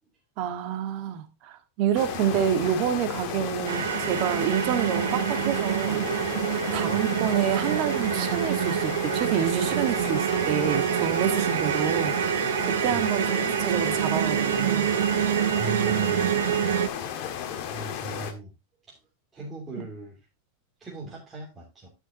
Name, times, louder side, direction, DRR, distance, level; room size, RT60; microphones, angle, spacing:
voice 1, 0.4-6.3 6.7-14.9 19.8-19.9, right 9 dB, 45° right, 1.6 m, -28 dB
sound 1, 1.9-18.3, left 9 dB, 50° left, 1.6 m, -34 dB
sound 2, 3.7-16.9, right 11 dB, 85° right, 0.6 m, -26 dB
voice 2, 15.2-17.0 17.4-18.5 18.9-19.0 19.3-20.2 20.8-21.9, right 3 dB, 15° right, 3.0 m, -39 dB
12.5 x 6.2 x 2.8 m
supercardioid pair, 140°, 0 cm